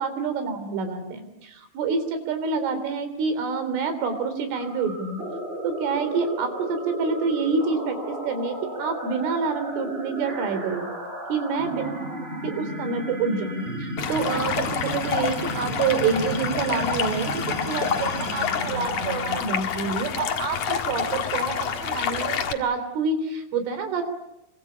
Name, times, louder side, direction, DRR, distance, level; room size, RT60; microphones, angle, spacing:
voice 1, 0.0-5.2 5.6-10.9 11.3-24.0, right 5 dB, 85° right, 9 dB, 6.0 m, -27 dB
sound 1, 4.5-19.7, right 1 dB, 10° right, 5.4 m, -34 dB
Stream, 14.0-22.5, left 7 dB, 65° left, 1.7 m, -28 dB
27.0 x 24.5 x 8.7 m, 0.85 s
omnidirectional pair, 5.5 m